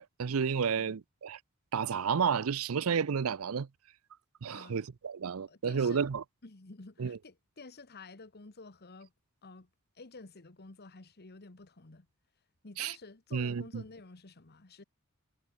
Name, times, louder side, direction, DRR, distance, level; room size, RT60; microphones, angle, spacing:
voice 1, 0.0-1.4 1.7-3.7 4.4-6.2 7.0-7.2 12.8-12.9 13.3-13.8, right 6 dB, 70° right, 0.5 m, -31 dB
voice 2, 5.5-6.0 6.4-9.1 9.4-9.7 9.9-12.1 12.6-14.8, left 3 dB, 50° left, 1.3 m, -51 dB
head